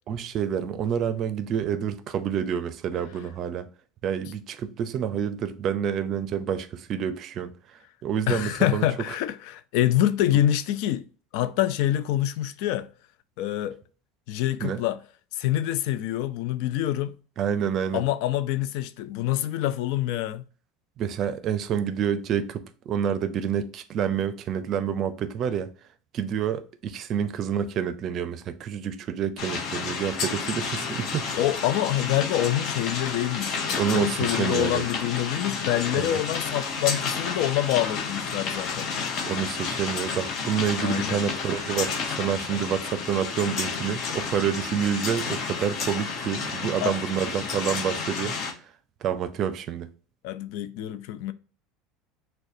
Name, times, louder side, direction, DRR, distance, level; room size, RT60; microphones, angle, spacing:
voice 1, 0.1-3.7 4.0-7.6 8.0-8.9 14.6-14.8 17.4-18.1 21.0-25.7 26.1-31.3 33.8-34.8 35.9-36.2 39.3-48.4 49.0-49.9, right 8 dB, 45° right, 0.5 m, -28 dB
voice 2, 8.3-11.1 11.3-12.9 13.4-13.8 14.3-15.0 15.3-17.2 17.9-20.4 31.4-38.9 40.8-41.2 46.8-46.9 50.2-51.3, left 13 dB, 70° left, 0.3 m, -26 dB
sound 1, 29.4-48.5, left 5 dB, 55° left, 0.8 m, -31 dB
6.3 x 2.2 x 2.7 m
supercardioid pair, 115°, 0 cm